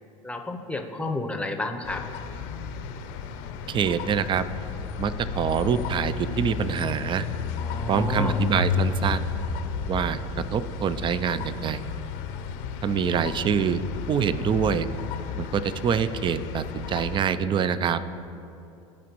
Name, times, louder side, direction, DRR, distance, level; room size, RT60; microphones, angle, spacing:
voice 1, 0.2-2.0 7.6-8.4, left 2 dB, 5° left, 5 dB, 0.8 m, -31 dB
sound 1, 1.8-17.2, left 5 dB, 60° left, 0.7 m, -32 dB
voice 2, 3.7-4.4 5.0-7.3 7.9-9.2 9.9-10.2 10.5-11.8 12.8-13.8 14.1-14.9 15.4-18.0, right 7 dB, 30° right, 14 dB, 0.4 m, -25 dB
15.0 x 5.0 x 3.0 m, 2.8 s
hypercardioid pair, 85°, 17 cm